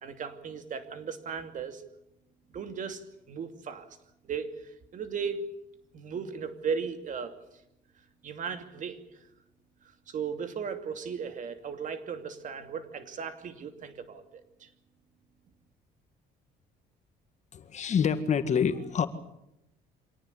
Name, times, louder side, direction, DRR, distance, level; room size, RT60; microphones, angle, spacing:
voice 1, 0.0-1.8 2.5-3.9 4.2-5.4 5.9-7.4 8.2-9.0 9.8-14.7, right 6 dB, 50° right, 8 dB, 2.6 m, -36 dB
voice 2, 17.5-19.1, left 7 dB, 45° left, 10 dB, 1.9 m, -27 dB
25.5 x 18.5 x 8.3 m, 0.84 s
cardioid pair, 110°, 17 cm